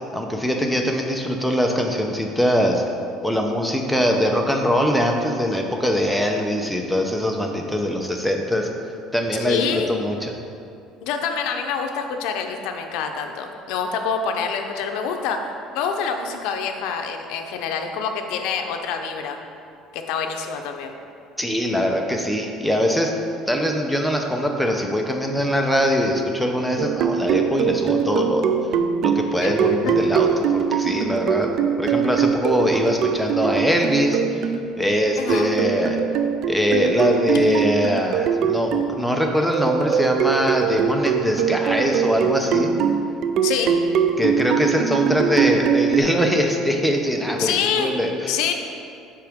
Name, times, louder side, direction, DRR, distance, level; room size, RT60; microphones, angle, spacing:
voice 1, 0.1-2.8 3.2-8.7 9.1-10.3 21.4-23.1 23.5-28.5 29.0-31.5 31.8-34.5 34.8-36.0 36.5-42.7 44.2-48.4, equal, ahead, 2 dB, 0.7 m, -22 dB
voice 2, 9.4-9.9 11.0-15.4 15.7-19.4 19.9-20.9 29.4-29.5 29.8-29.9 35.2-35.5 43.4-43.8 47.4-47.9 48.3-48.5, left 6 dB, 75° left, 4 dB, 0.6 m, -26 dB
sound 1, 26.8-34.6 35.3-39.0 39.5-46.0, right 7 dB, 60° right, 0.4 m, -22 dB
7.6 x 5.0 x 3.6 m, 2.5 s
cardioid pair, 135°, 0 cm